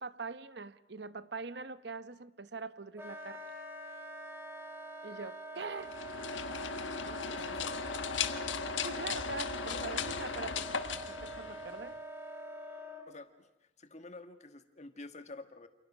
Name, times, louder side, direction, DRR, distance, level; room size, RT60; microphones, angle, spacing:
voice 1, 0.0-3.5 5.0-6.0 8.8-10.7 10.9-12.0, right 4 dB, 60° right, 1.0 m, -43 dB
Wind instrument woodwind instrument, 2.9-13.1, right 1 dB, 15° right, 3.3 m, -45 dB
sound 1, 5.8-12.0, left 5 dB, 85° left, 1.4 m, -37 dB
voice 2, 7.1-7.8 9.7-10.1 13.1-13.5 13.8-15.7, left 2 dB, 35° left, 1.7 m, -49 dB
28.5 x 28.5 x 6.2 m
head